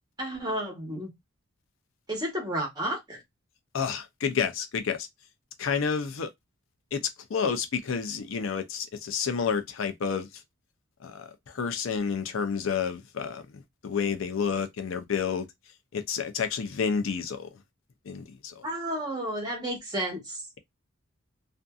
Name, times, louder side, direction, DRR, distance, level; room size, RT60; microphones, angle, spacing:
voice 1, 0.2-1.1 2.1-3.2 18.6-20.4, right 1 dB, 20° right, 1.1 m, -32 dB
voice 2, 3.7-5.1 5.6-6.3 6.9-10.4 11.0-15.5 15.9-17.5 18.1-18.7, left 6 dB, 70° left, 0.5 m, -30 dB
2.5 x 2.5 x 2.2 m
head